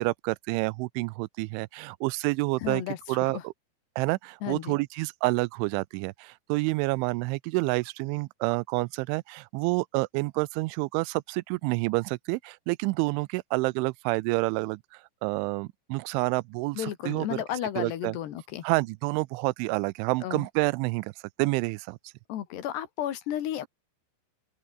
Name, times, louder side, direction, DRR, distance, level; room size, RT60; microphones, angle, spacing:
voice 1, 0.0-2.8 3.1-3.5 4.0-14.8 15.2-17.4 17.8-18.2 18.6-21.1 21.4-22.0, right 24 dB, 90° right, 3.0 m, -28 dB
voice 2, 2.6-3.4 4.4-4.8 16.8-18.6 20.2-20.5 22.3-23.7, left 11 dB, 70° left, 3.7 m, -33 dB
open air
omnidirectional pair, 5.3 m